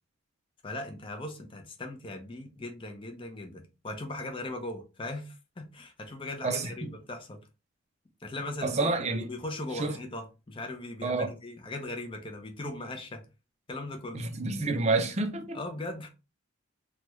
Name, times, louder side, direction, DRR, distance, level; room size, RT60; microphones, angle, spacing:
voice 1, 0.6-7.4 8.2-13.3 13.7-14.2 15.5-16.1, left 2 dB, 25° left, 0.5 m, -39 dB
voice 2, 8.6-9.3 9.8-9.9 11.0-11.3 14.1-15.6, right 3 dB, 30° right, 0.4 m, -28 dB
3.1 x 2.3 x 3.0 m
head